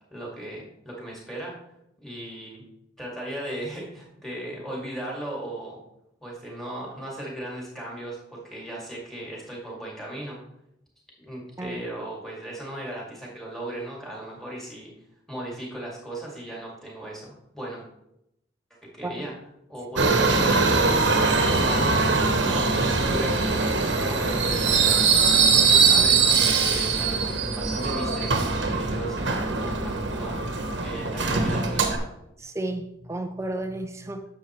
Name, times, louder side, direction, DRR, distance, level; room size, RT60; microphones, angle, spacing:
voice 1, 0.1-1.6 2.0-2.6 3.0-5.8 6.2-10.4 11.2-14.9 15.3-17.8 18.9-19.3 19.7-20.8 21.1-22.0 22.4-25.0 25.6-28.3 28.7-30.4 30.8-32.1, right 1 dB, ahead, 2.3 m, -37 dB
Subway metro underground, 20.0-32.0, right 4 dB, 75° right, 1.1 m, -22 dB
voice 2, 32.4-34.3, right 2 dB, 15° right, 0.4 m, -33 dB
10.0 x 7.0 x 3.1 m
head